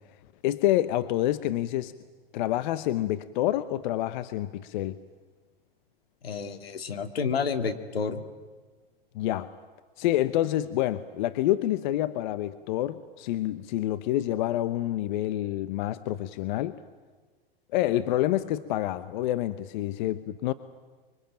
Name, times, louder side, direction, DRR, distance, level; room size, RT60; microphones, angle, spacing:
voice 1, 0.4-1.9 2.3-5.0 9.1-9.5 10.0-16.8 17.7-20.5, left 14 dB, 50° left, 13 dB, 1.0 m, -27 dB
voice 2, 6.2-8.2, left 5 dB, 80° left, 7 dB, 2.4 m, -30 dB
25.0 x 23.5 x 9.0 m, 1.4 s
hypercardioid pair, 110°, 29 cm